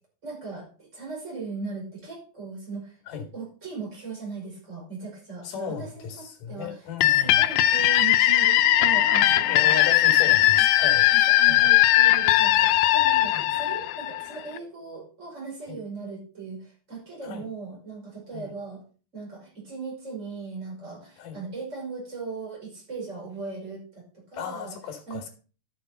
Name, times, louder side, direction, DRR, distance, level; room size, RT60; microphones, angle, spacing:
voice 1, 0.2-3.0 3.3-6.8 7.2-9.8 10.5-10.7 11.1-18.8 19.1-24.0 24.3-24.8 25.1-25.3, right 4 dB, 20° right, 5.3 m, -38 dB
voice 2, 5.4-7.4 9.3-11.1 11.5-11.8 13.3-13.5 15.7-15.8 17.2-17.4 18.3-18.5 21.2-21.4 24.3-25.3, left 7 dB, 65° left, 3.6 m, -36 dB
sound 1, 7.0-14.6, left 14 dB, 85° left, 2.4 m, -19 dB
12.0 x 7.8 x 4.2 m
omnidirectional pair, 4.1 m